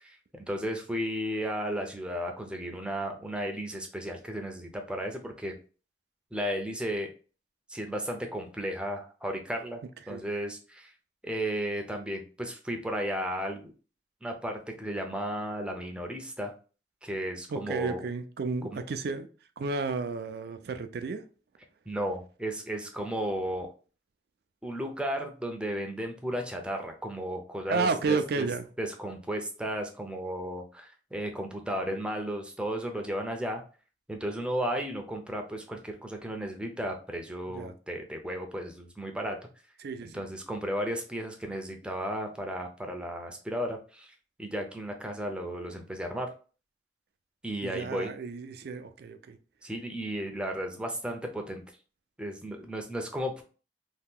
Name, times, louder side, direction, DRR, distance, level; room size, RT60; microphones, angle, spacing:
voice 1, 0.0-5.6 6.3-7.1 7.7-9.8 10.1-10.9 11.2-13.7 14.2-16.5 17.0-18.0 18.6-18.8 21.9-23.7 24.6-28.5 28.8-33.6 34.1-39.4 40.1-44.1 44.4-46.3 47.4-48.1 49.6-51.6 52.2-53.4, equal, 5° right, 0.5 m, -34 dB
voice 2, 17.5-19.3 19.6-21.2 27.7-28.7 37.5-37.7 39.8-40.1 47.6-49.4, right 4 dB, 60° right, 0.4 m, -32 dB
2.8 x 2.3 x 3.5 m
head